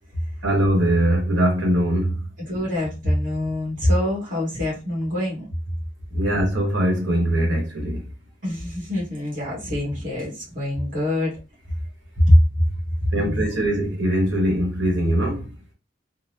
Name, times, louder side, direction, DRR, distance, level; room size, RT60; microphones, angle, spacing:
voice 1, 0.4-2.2 6.1-8.1 13.1-15.5, equal, 65° right, 1.3 m, -21 dB
voice 2, 2.4-5.5 8.4-11.4 12.3-12.4 13.1-13.4, left 1 dB, 40° right, 1.6 m, -23 dB
4.0 x 2.1 x 2.7 m
head